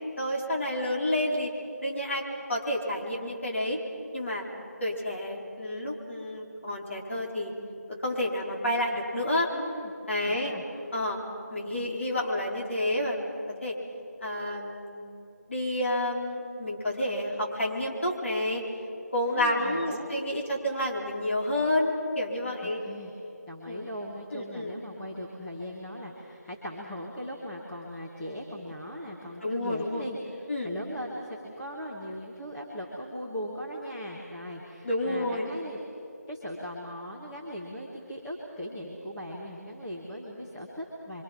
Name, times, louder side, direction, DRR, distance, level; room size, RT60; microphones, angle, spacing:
voice 1, 0.2-1.5 1.8-3.8 4.1-4.4 4.8-7.5 8.0-9.5 10.1-10.6 10.9-11.2 11.5-13.4 13.6-13.8 14.2-15.1 15.5-18.6 19.1-22.8 23.7-23.9 24.3-24.8 29.4-30.0 30.5-30.7 34.8-35.5, left 1 dB, 45° left, -2 dB, 4.4 m, -29 dB
voice 2, 9.5-9.9 10.2-10.6 11.5-11.7 19.2-20.1 22.6-23.1 23.5-35.8 36.3-41.2, equal, 5° left, -8 dB, 1.1 m, -39 dB
28.0 x 24.5 x 6.1 m, 2.7 s
figure-of-eight pair, 170°, 9 cm